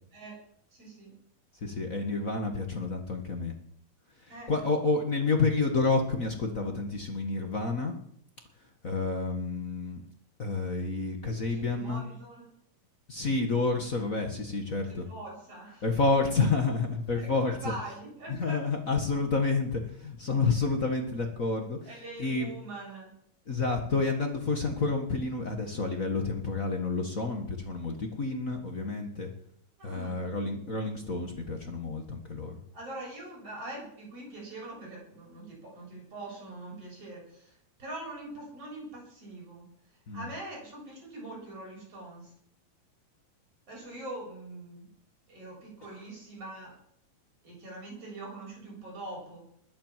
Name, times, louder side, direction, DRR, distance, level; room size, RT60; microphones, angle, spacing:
voice 1, 0.7-1.2 4.3-4.5 11.5-12.5 14.9-15.9 17.1-18.6 21.9-23.1 29.8-30.2 32.7-37.5 37.8-39.7 40.1-42.3 43.7-44.9 45.3-46.8 47.4-49.5, right 2 dB, 45° right, -2 dB, 8.2 m, -43 dB
voice 2, 1.6-3.5 4.2-8.0 8.8-10.0 10.4-12.0 13.1-15.1 15.8-17.5 18.3-22.5 23.5-29.3 29.8-32.6 40.1-40.3 45.8-46.0, left 3 dB, 45° left, 4 dB, 1.1 m, -29 dB
21.0 x 7.7 x 7.5 m, 0.66 s
omnidirectional pair, 3.9 m